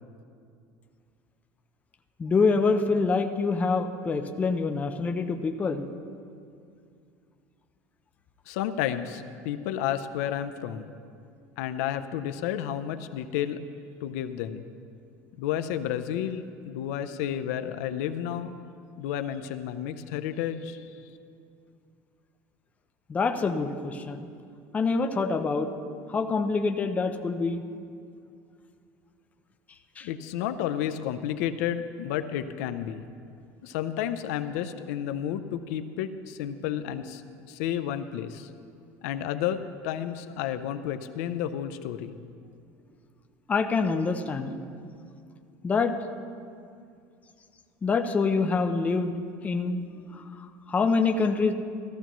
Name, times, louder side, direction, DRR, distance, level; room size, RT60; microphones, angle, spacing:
voice 1, 2.2-5.8 23.1-24.3 24.7-25.7 26.1-27.6 30.0-30.1 43.5-44.6 45.6-45.9 47.8-49.1 49.4-49.8 50.1-50.2 50.7-51.5, left 4 dB, 20° left, 6 dB, 0.5 m, -25 dB
voice 2, 8.5-11.0 11.6-13.6 14.0-14.6 15.4-18.5 19.0-20.9 30.0-33.1 33.6-37.2 37.5-38.5 39.0-42.1, left 10 dB, 85° left, 10 dB, 0.6 m, -31 dB
14.5 x 14.0 x 3.1 m, 2.4 s
cardioid pair, 150°, 8 cm